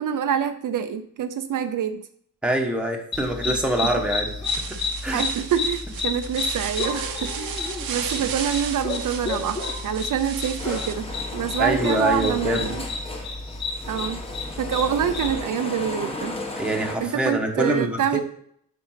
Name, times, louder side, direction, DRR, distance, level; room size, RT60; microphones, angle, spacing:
voice 1, 0.0-2.0 5.1-12.9 13.9-14.2 14.6-16.4 17.0-18.2, right 8 dB, 65° right, 8 dB, 0.6 m, -26 dB
voice 2, 2.4-4.3 4.7-5.2 11.6-12.7 16.6-18.0, right 1 dB, 5° right, 1 dB, 1.2 m, -25 dB
sound 1, 3.1-15.4, left 3 dB, 50° left, 2.5 m, -31 dB
sound 2, 4.4-10.9, right 7 dB, 90° right, 1.0 m, -34 dB
sound 3, 10.6-17.0, left 2 dB, 15° left, 1.2 m, -35 dB
7.5 x 6.1 x 5.7 m, 0.66 s
wide cardioid pair, 175°, 34 cm